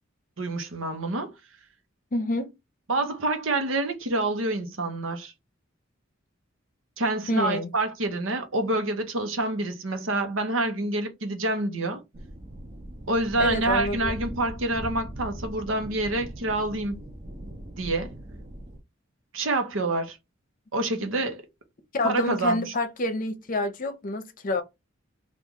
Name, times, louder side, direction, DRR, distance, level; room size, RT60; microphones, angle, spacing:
voice 1, 0.4-1.3 2.9-5.3 7.0-12.0 13.1-17.0 17.8-18.1 19.3-20.2 20.7-21.4 22.0-22.7, right 2 dB, 80° right, 0.9 m, -27 dB
voice 2, 2.1-2.5 7.3-7.7 13.4-14.1 21.0-21.1 21.9-24.6, left 1 dB, 45° left, 0.7 m, -28 dB
sound 1, 12.1-18.8, right 1 dB, 35° right, 0.8 m, -39 dB
3.0 x 2.5 x 3.7 m
head